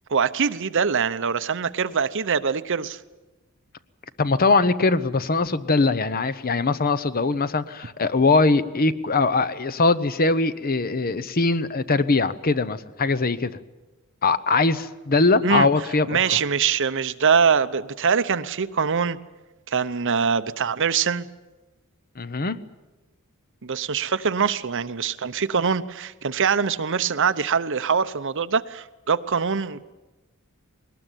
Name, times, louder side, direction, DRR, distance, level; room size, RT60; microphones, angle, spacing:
voice 1, 0.1-3.0 15.4-15.7 16.1-19.2 19.7-21.3 23.6-29.8, right 6 dB, 60° right, 11 dB, 0.8 m, -23 dB
voice 2, 4.2-13.5 14.2-16.4 22.2-22.6, left 3 dB, 45° left, 14 dB, 0.9 m, -21 dB
20.5 x 19.5 x 9.1 m, 1.1 s
head